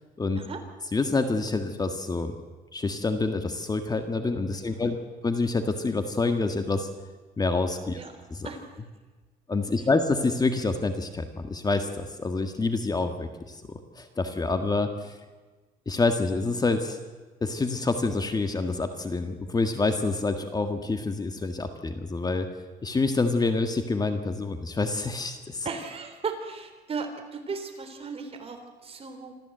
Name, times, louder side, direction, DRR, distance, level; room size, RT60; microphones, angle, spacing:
voice 1, 0.9-2.4 2.7-5.0 5.2-6.9 7.4-8.0 8.3-8.5 9.5-13.6 13.9-15.2 15.8-17.0 17.4-22.5 22.8-25.6, left 3 dB, 25° left, 7 dB, 1.7 m, -27 dB
voice 2, 4.6-4.9 7.9-8.1 8.4-8.6 9.8-9.9 25.6-29.3, right 5 dB, 35° right, 5 dB, 3.7 m, -36 dB
26.0 x 14.5 x 7.9 m, 1.3 s
cardioid pair, 110°, 17 cm